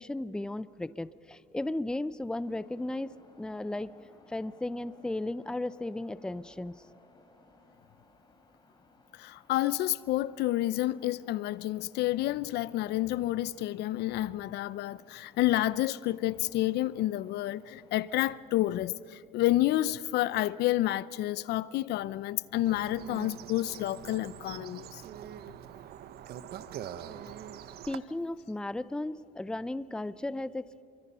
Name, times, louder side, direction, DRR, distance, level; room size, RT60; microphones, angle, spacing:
voice 1, 0.0-3.9 4.3-6.8 27.9-30.8, left 2 dB, 5° left, 0.5 m, -35 dB
sound 1, 2.3-18.4, left 3 dB, 25° left, 4.3 m, -61 dB
voice 2, 9.2-25.0, left 15 dB, 75° left, 0.6 m, -29 dB
sound 2, 22.6-28.0, right 10 dB, 70° right, 1.0 m, -44 dB
28.0 x 23.5 x 5.6 m
cardioid pair, 110°, 17 cm